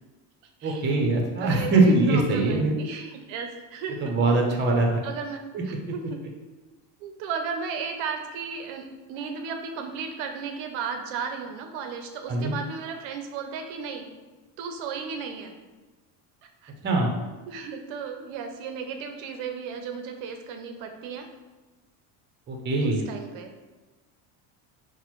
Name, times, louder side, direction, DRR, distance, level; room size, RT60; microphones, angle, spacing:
voice 1, 0.6-2.7 4.0-5.0 5.5-5.6 12.3-12.5 16.8-17.1 22.5-23.0, right 2 dB, 25° right, 2 dB, 0.5 m, -22 dB
voice 2, 1.4-4.1 5.0-5.4 5.7-6.2 7.0-14.1 14.6-15.5 16.6-16.7 17.5-21.3 22.8-23.5, right 6 dB, 65° right, 5 dB, 0.5 m, -35 dB
4.0 x 2.1 x 3.0 m, 1.2 s
supercardioid pair, 105°, 49 cm